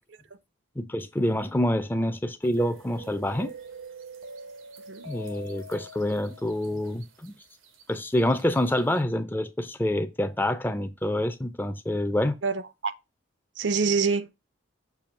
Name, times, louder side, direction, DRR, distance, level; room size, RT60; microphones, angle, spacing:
voice 1, 0.8-3.5 5.0-7.3 7.9-12.4, left 1 dB, 10° left, 0.5 m, -27 dB
sound 1, 2.4-9.0, right 2 dB, 90° right, 1.0 m, -45 dB
voice 2, 12.4-12.9 13.6-14.3, right 5 dB, 65° right, 0.6 m, -26 dB
6.9 x 2.8 x 5.7 m
head